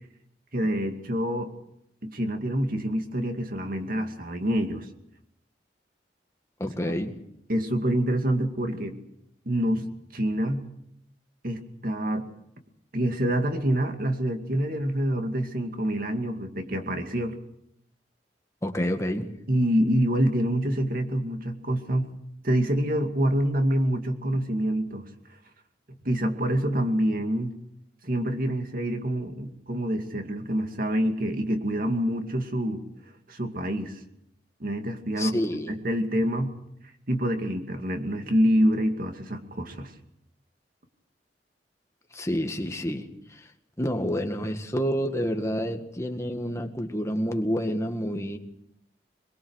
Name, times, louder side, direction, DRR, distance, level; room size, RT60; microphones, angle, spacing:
voice 1, 0.5-1.5 2.0-4.9 7.5-9.0 9.5-9.9 10.1-10.6 11.4-12.3 12.9-17.4 19.5-22.1 22.4-25.0 26.0-27.5 28.0-32.8 33.3-33.9 34.6-36.5 37.1-39.9, equal, 50° right, 5 dB, 2.4 m, -26 dB
voice 2, 6.6-7.1 18.6-19.3 35.2-35.8 42.1-43.4 43.8-48.4, equal, 15° left, 5 dB, 1.9 m, -28 dB
23.0 x 22.5 x 6.5 m, 0.76 s
head